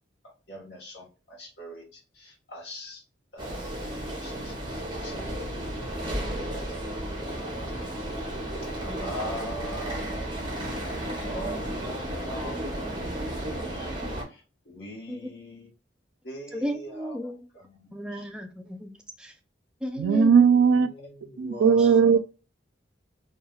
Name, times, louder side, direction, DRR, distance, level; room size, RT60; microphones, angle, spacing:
voice 1, 0.5-1.0 1.4-1.8 2.2-3.0 3.3-3.6 4.2-6.6 8.8-10.2 11.2-12.7 13.6-13.9 14.7-15.7 16.2-17.1 17.7-17.8 21.3-22.2, equal, 60° left, 0.9 m, -41 dB
sound 1, 3.4-14.2, right 1 dB, 25° right, 0.7 m, -33 dB
voice 2, 16.5-17.5 17.9-19.3 19.8-20.5 21.8-21.9, equal, 5° right, 0.3 m, -34 dB
voice 3, 20.0-20.9 21.4-22.2, right 6 dB, 85° right, 0.3 m, -18 dB
3.1 x 2.2 x 2.2 m
head